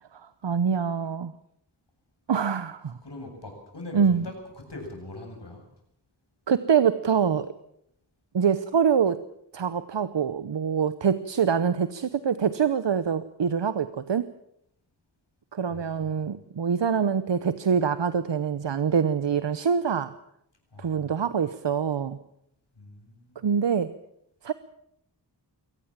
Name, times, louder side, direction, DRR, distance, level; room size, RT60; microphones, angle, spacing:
voice 1, 0.4-1.3 2.3-2.9 3.9-4.2 6.5-7.5 8.3-9.2 9.5-14.3 15.5-20.1 20.8-22.2 23.4-23.9 24.4-24.5, right 7 dB, 85° right, 13 dB, 0.9 m, -25 dB
voice 2, 3.0-5.7 15.7-16.4 20.7-21.3 22.8-23.5, left 2 dB, 70° left, 2 dB, 7.7 m, -42 dB
23.0 x 18.5 x 7.4 m, 0.77 s
wide cardioid pair, 60°, 42 cm